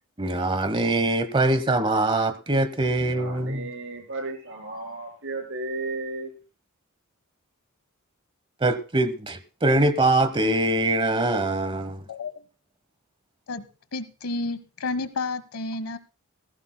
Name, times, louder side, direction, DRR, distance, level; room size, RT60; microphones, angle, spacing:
voice 1, 0.2-3.7 8.6-12.0, right 2 dB, 25° right, 1.1 m, -23 dB
voice 2, 2.8-6.3, right 2 dB, 60° right, 5.4 m, -34 dB
voice 3, 12.1-12.4 13.5-13.7 13.9-16.0, left 3 dB, 75° left, 1.3 m, -31 dB
19.5 x 16.0 x 2.2 m
head